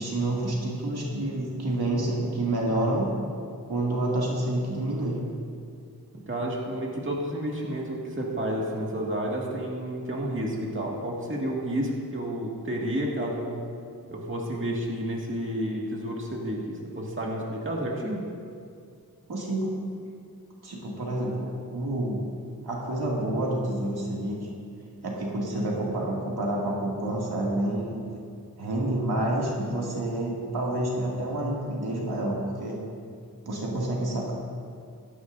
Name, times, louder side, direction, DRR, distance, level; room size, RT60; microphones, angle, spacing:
voice 1, 0.0-3.1 3.6-5.2 19.3-19.7 20.6-22.2 22.6-24.5 25.0-28.0 28.6-32.8 33.4-34.3, right 1 dB, 90° right, -4 dB, 2.4 m, -28 dB
voice 2, 6.3-13.7 14.1-18.2, right 1 dB, 35° right, -3 dB, 2.1 m, -30 dB
17.5 x 13.0 x 2.7 m, 2.3 s
wide cardioid pair, 100°, 37 cm